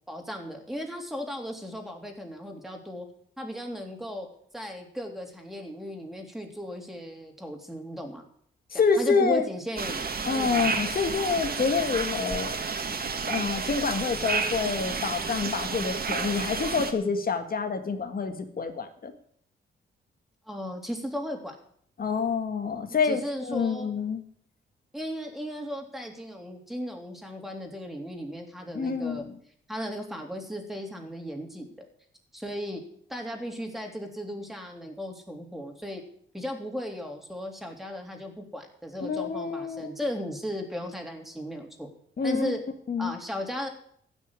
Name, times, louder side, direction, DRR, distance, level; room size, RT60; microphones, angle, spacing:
voice 1, 0.1-3.1 3.4-4.3 4.5-8.2 8.7-10.0 10.3-10.8 20.5-21.6 23.0-23.9 24.9-29.2 29.7-31.9 32.3-32.8 33.1-36.0 36.3-41.9 42.2-42.6 43.0-43.7, equal, ahead, 2 dB, 3.4 m, -36 dB
voice 2, 8.7-9.4 10.2-12.5 13.3-19.1 22.0-24.2 28.7-29.3 39.0-39.9 42.2-42.5 42.9-43.1, left 5 dB, 50° left, 6 dB, 1.8 m, -27 dB
sound 1, 9.8-16.9, right 4 dB, 50° right, 2.0 m, -31 dB
15.5 x 6.4 x 9.9 m, 0.64 s
cardioid pair, 95°, 20 cm